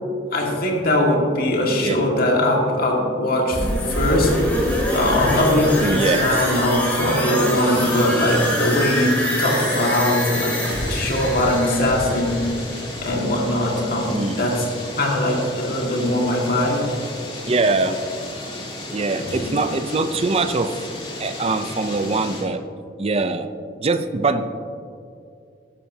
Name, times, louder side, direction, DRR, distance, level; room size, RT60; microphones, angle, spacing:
voice 1, 0.3-4.3 4.6-10.6 10.9-14.7 15.0-16.9 19.2-19.4, left 1 dB, 55° left, -1 dB, 1.9 m, -21 dB
sound 1, 3.5-13.2 13.5-13.6, equal, 10° left, 2.9 m, -25 dB
voice 2, 5.8-6.3 14.1-14.5 17.5-18.0 18.9-20.7 21.2-22.6 23.0-23.5 23.8-24.5, right 3 dB, 35° right, 10 dB, 0.5 m, -22 dB
sound 2, 7.5-22.4, left 1 dB, 35° left, 2.7 m, -34 dB
13.5 x 11.0 x 2.8 m, 2.4 s
head